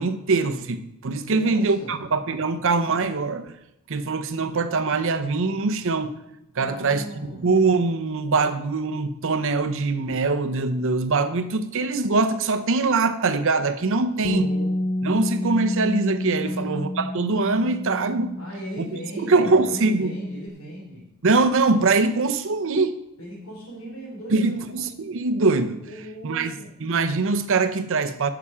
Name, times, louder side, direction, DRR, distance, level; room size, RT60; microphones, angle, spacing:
voice 1, 0.0-3.5 3.9-6.2 6.6-7.0 7.4-14.5 15.0-18.4 18.8-18.9 19.2-20.1 21.2-23.0 24.3-25.8 26.2-26.5 26.8-28.3, right 3 dB, 65° right, 0.8 m, -23 dB
voice 2, 1.2-1.9 6.6-7.5 14.1-14.7 16.4-16.6 18.4-21.1 23.2-24.7 25.8-26.7, right 1 dB, 80° left, 3.2 m, -38 dB
Bass guitar, 14.2-20.5, left 1 dB, 25° left, 0.4 m, -30 dB
12.5 x 6.0 x 4.9 m
head